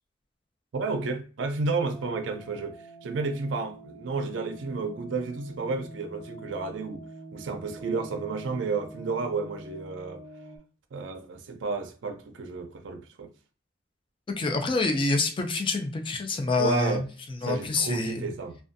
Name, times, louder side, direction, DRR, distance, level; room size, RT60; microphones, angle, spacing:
voice 1, 0.7-7.0 7.3-10.2 10.9-13.3 16.6-17.1 17.4-18.6, right 4 dB, 75° right, 0.4 m, -31 dB
sound 1, 1.9-10.6, right 1 dB, 5° left, 1.2 m, -45 dB
voice 2, 14.4-17.0 17.4-18.3, left 3 dB, 25° left, 0.4 m, -27 dB
2.5 x 2.1 x 2.5 m
head